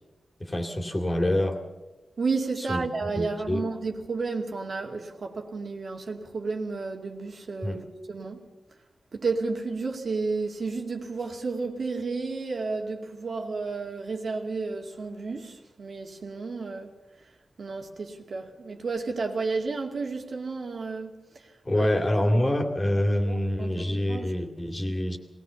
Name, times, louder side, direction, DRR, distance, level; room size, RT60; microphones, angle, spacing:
voice 1, 0.4-1.6 2.7-3.6 7.6-7.8 21.6-25.2, left 1 dB, 25° left, 2.5 m, -26 dB
voice 2, 2.2-8.5 9.1-17.0 17.6-22.4 23.3-24.3, right 4 dB, 65° right, 2.3 m, -32 dB
20.5 x 18.0 x 7.1 m
wide cardioid pair, 95°, 0 cm